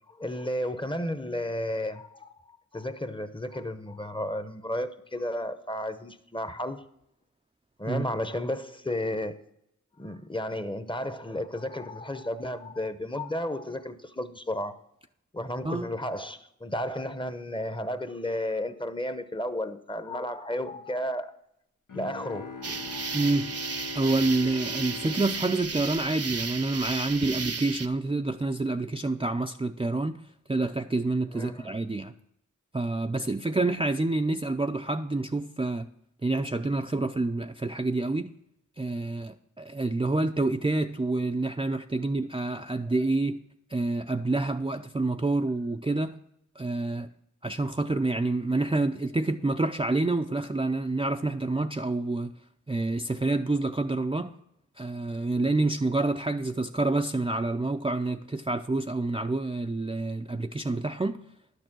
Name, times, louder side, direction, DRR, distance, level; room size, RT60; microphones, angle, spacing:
voice 1, 0.2-6.9 7.8-9.4 10.0-14.8 15.3-21.4 21.9-23.2 31.3-31.8, left 1 dB, 15° left, 0.8 m, -33 dB
Bowed string instrument, 21.9-27.0, left 4 dB, 85° left, 1.0 m, -42 dB
sound 1, 22.6-27.9, right 5 dB, 50° right, 0.7 m, -34 dB
voice 2, 23.1-23.5 23.9-30.2 30.5-32.1 32.7-35.9 36.2-38.3 38.8-43.4 43.7-46.2 46.6-47.1 47.4-52.3 52.7-54.3 54.8-61.2, right 2 dB, 15° right, 0.5 m, -28 dB
11.5 x 6.7 x 6.1 m
cardioid pair, 40°, 31 cm